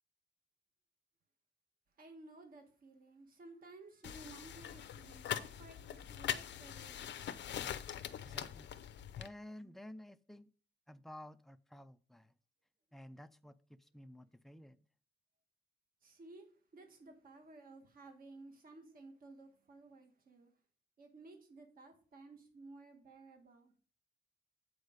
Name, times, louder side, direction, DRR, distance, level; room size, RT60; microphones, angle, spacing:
voice 1, 2.0-7.3 16.0-16.5 16.7-20.5 21.0-23.7, right 2 dB, 50° right, 1.5 m, -56 dB
sound 1, 4.0-9.3, left 10 dB, 80° left, 0.6 m, -42 dB
voice 2, 8.2-8.7 9.2-10.5 10.9-12.3 12.9-14.8, left 1 dB, ahead, 0.3 m, -53 dB
8.0 x 4.7 x 5.1 m
wide cardioid pair, 170°, 18 cm